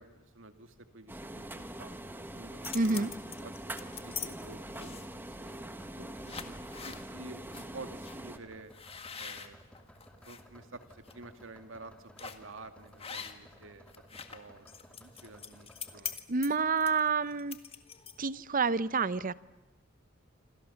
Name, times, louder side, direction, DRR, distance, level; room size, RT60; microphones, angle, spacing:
voice 1, 0.0-3.1 3.4-4.9 5.3-5.6 6.0-8.7 9.2-9.6 10.3-13.9 14.3-16.1, right 3 dB, 70° right, 8 dB, 2.1 m, -50 dB
sound 1, 1.1-8.4, right 1 dB, 10° right, 1.3 m, -43 dB
sound 2, 2.4-4.3 4.7-5.2 5.8-5.9 6.2-7.0 7.5-7.7 8.0-8.2 8.7-10.4 10.9-11.1 12.2-12.5 13.0-13.6 13.9-18.4, left 7 dB, 30° left, 1.8 m, -43 dB
voice 2, 2.7-3.1 16.3-17.6 18.2-19.3, right 4 dB, 40° right, 16 dB, 0.8 m, -28 dB
sound 3, 3.7-16.2, equal, 5° left, 3.5 m, -57 dB
27.5 x 26.5 x 7.1 m, 1.1 s
head